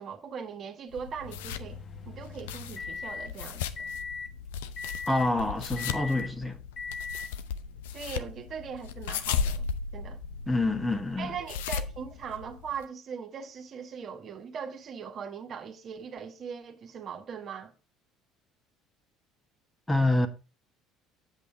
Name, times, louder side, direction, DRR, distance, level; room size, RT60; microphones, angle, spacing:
voice 1, 0.0-3.6 7.9-9.7 9.9-10.2 11.2-17.7, right 6 dB, 45° right, 1.6 m, -40 dB
sound 1, 0.9-12.8, left 6 dB, 75° left, 0.7 m, -36 dB
sound 2, 1.2-3.3 3.8-4.3 4.8-5.3 5.8-6.3 6.8-7.3, left 4 dB, 35° left, 0.9 m, -39 dB
voice 2, 5.1-6.6 10.5-11.3 19.9-20.3, left 2 dB, 15° left, 1.5 m, -26 dB
8.2 x 7.8 x 3.5 m
hypercardioid pair, 60°, 0 cm